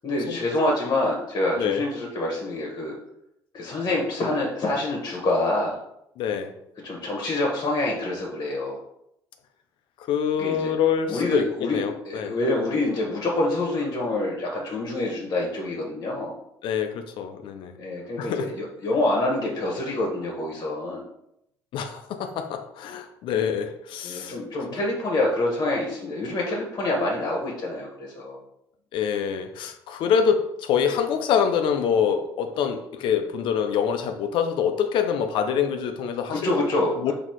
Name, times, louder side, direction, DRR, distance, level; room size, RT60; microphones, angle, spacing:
voice 1, 0.0-2.9 3.5-5.8 6.8-8.8 10.4-10.7 11.1-16.3 17.8-21.0 24.0-28.4 36.3-37.1, left 2 dB, 45° left, -1 dB, 1.3 m, -26 dB
voice 2, 6.2-6.5 10.1-12.4 16.6-17.7 18.2-18.5 21.7-24.4 28.9-36.4 37.0-37.1, left 7 dB, 65° left, 7 dB, 0.5 m, -25 dB
4.0 x 2.8 x 4.5 m, 0.79 s
supercardioid pair, 70°, 9 cm